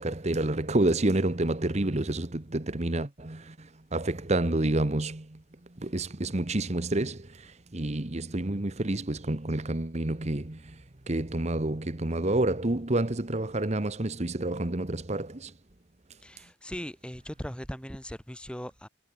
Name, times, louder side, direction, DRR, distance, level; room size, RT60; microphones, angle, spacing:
voice 1, 0.0-5.4 5.8-15.5, right 2 dB, 35° right, 1.2 m, -29 dB
voice 2, 16.2-18.9, equal, 5° left, 6.2 m, -39 dB
head